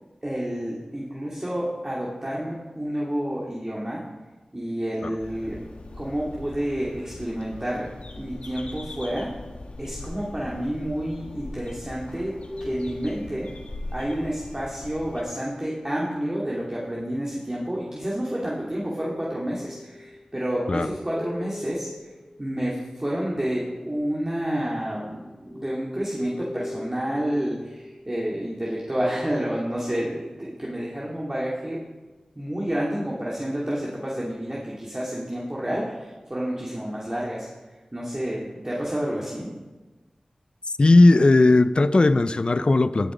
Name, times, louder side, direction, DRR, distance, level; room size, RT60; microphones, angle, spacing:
voice 1, 0.2-4.0 4.5-5.6 6.0-7.9 8.2-9.3 9.8-12.3 12.6-13.5 13.9-22.1 22.4-31.8 32.3-37.5 37.9-39.5, equal, 25° right, -5 dB, 2.6 m, -29 dB
sound 1, 5.2-15.2, left 2 dB, 70° left, 1.5 m, -40 dB
sound 2, 12.3-14.2 18.6-23.1 24.5-30.6, left 1 dB, 20° left, 1.2 m, -41 dB
voice 2, 40.8-43.1, left 2 dB, 50° left, 14 dB, 0.6 m, -17 dB
17.0 x 7.9 x 5.2 m, 1.2 s
cardioid pair, 45°, 2 cm